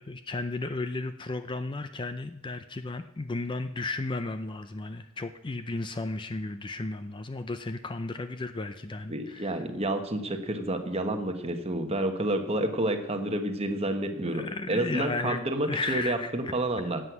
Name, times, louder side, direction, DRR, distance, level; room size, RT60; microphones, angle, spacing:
voice 1, 0.0-9.7 14.3-16.5, left 3 dB, 20° left, 10 dB, 0.4 m, -34 dB
voice 2, 9.1-17.0, right 1 dB, 30° right, 6 dB, 1.2 m, -29 dB
11.0 x 7.9 x 8.1 m, 0.87 s
head